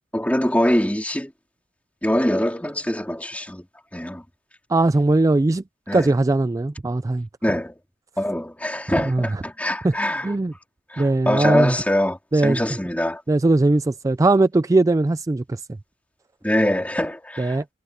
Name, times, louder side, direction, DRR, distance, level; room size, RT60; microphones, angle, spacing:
voice 1, 0.1-1.3 2.0-3.7 3.9-4.2 5.9-6.1 7.4-7.7 8.2-10.3 10.9-13.2 16.4-17.6, left 1 dB, 10° left, 3.3 m, -23 dB
voice 2, 4.7-5.6 5.9-7.3 9.1-9.4 9.8-10.0 10.2-10.5 11.0-11.7 12.3-12.6 13.3-15.6 17.4-17.6, right 2 dB, 20° right, 0.3 m, -19 dB
head